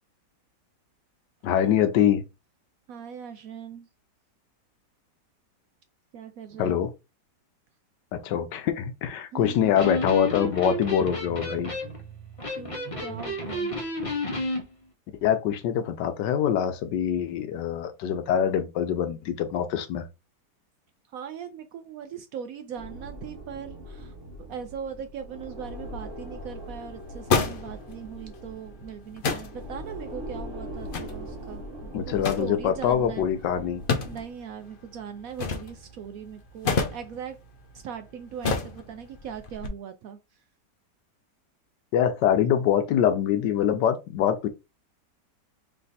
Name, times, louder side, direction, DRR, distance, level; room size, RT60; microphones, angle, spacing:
voice 1, 1.4-2.2 6.6-6.9 8.1-11.7 15.2-20.1 31.9-33.8 41.9-44.5, left 9 dB, 80° left, 1.3 m, -24 dB
voice 2, 2.9-3.9 6.1-6.8 9.3-9.7 12.5-13.7 21.1-33.3 34.1-37.4 37.7-40.4, right 7 dB, 70° right, 0.8 m, -40 dB
Electric guitar, 9.7-14.6, left 1 dB, 25° left, 0.8 m, -31 dB
sound 1, 22.8-34.3, equal, 40° right, 1.0 m, -41 dB
sound 2, 25.6-39.7, left 4 dB, 60° left, 0.5 m, -33 dB
3.4 x 3.3 x 3.9 m
omnidirectional pair, 1.9 m